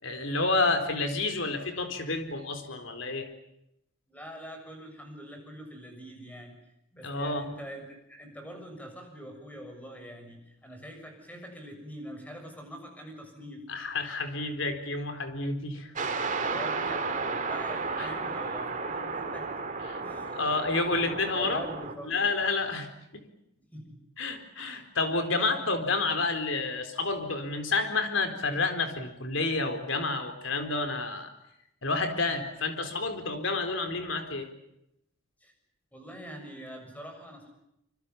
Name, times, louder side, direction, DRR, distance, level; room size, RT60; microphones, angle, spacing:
voice 1, 0.0-3.3 7.0-7.5 13.7-15.9 18.0-18.1 19.9-20.0 20.3-21.6 22.0-22.9 23.1-23.2 24.2-31.3 31.8-34.5, left 3 dB, 65° left, 7 dB, 4.3 m, -29 dB
voice 2, 4.1-6.6 6.9-13.7 16.4-19.5 20.0-20.6 20.8-22.2 23.6-24.0 24.5-24.8 35.4-35.5 35.9-37.5, equal, 10° left, 4 dB, 7.1 m, -44 dB
sound 1, 15.9-21.9, right 4 dB, 40° right, 2.7 m, -33 dB
26.5 x 25.5 x 7.2 m, 0.81 s
head